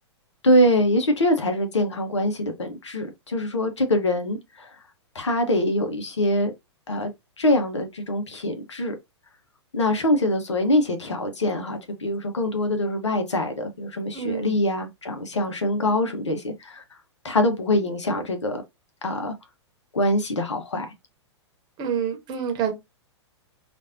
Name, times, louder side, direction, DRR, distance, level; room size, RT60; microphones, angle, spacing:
voice 1, 0.4-4.7 5.1-6.5 6.9-7.1 7.4-9.0 9.7-16.8 17.2-18.6 19.0-19.3 19.9-20.9, left 1 dB, 75° left, 1.1 m, -24 dB
voice 2, 14.1-14.6 21.8-22.7, right 8 dB, 30° right, 1.0 m, -27 dB
5.0 x 2.6 x 2.6 m
figure-of-eight pair, 105°, 15 cm